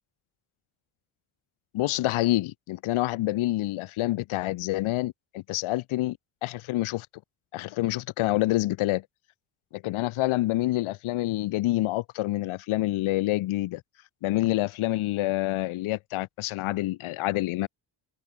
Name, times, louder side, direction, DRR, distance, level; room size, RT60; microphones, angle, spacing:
voice 1, 1.7-7.1 7.5-9.0 9.7-13.8 14.2-17.7, left 17 dB, 75° left, 0.6 m, -27 dB
cardioid pair, 75°, 49 cm